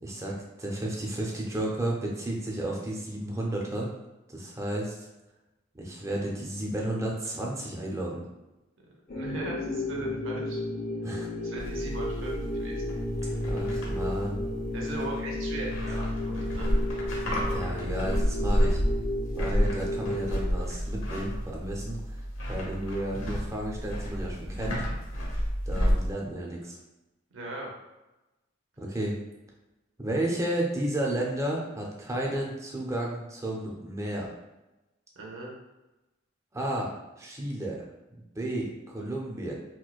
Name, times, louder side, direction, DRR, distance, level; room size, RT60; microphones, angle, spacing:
voice 1, 0.0-3.9 4.3-5.0 5.8-8.2 11.0-11.3 13.4-14.4 17.5-18.8 19.3-22.2 22.5-24.9 25.7-26.8 28.8-29.1 30.0-34.3 36.5-37.8 38.4-39.5, right 1 dB, 15° right, -2 dB, 0.5 m, -32 dB
sound 1, 9.1-20.4, left 1 dB, 50° left, 0.6 m, -33 dB
voice 2, 9.1-10.6 11.4-12.8 13.8-13.9 14.7-16.7 27.3-27.7 35.2-35.5, right 2 dB, 75° right, -2 dB, 0.9 m, -38 dB
sound 2, 11.6-26.1, equal, 85° left, 1.0 m, -31 dB
4.4 x 2.1 x 2.4 m, 1.0 s
head